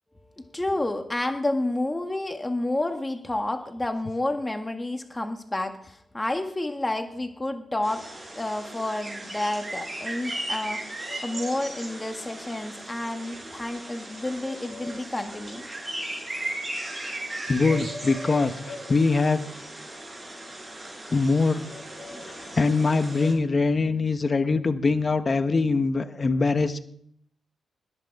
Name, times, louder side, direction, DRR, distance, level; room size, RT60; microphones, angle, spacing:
voice 1, 0.1-8.1 8.3-10.8 11.2-15.6, left 1 dB, 20° left, 5 dB, 1.8 m, -30 dB
sound 1, 7.8-23.3, right 1 dB, 35° right, 7.1 m, -37 dB
voice 2, 17.5-19.4 21.1-21.7 22.2-26.8, left 3 dB, 40° left, 10 dB, 1.2 m, -23 dB
20.0 x 9.1 x 4.9 m, 0.66 s
supercardioid pair, 50°, 0 cm